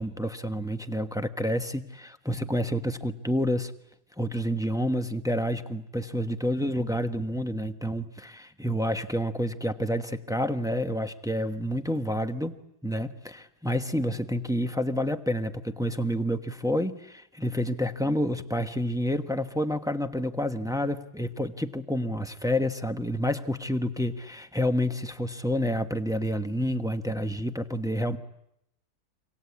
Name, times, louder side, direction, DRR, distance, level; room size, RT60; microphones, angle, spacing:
voice 1, 0.0-3.7 4.2-28.2, equal, 5° right, 7 dB, 1.0 m, -29 dB
27.5 x 25.5 x 8.5 m, 0.81 s
omnidirectional pair, 1.7 m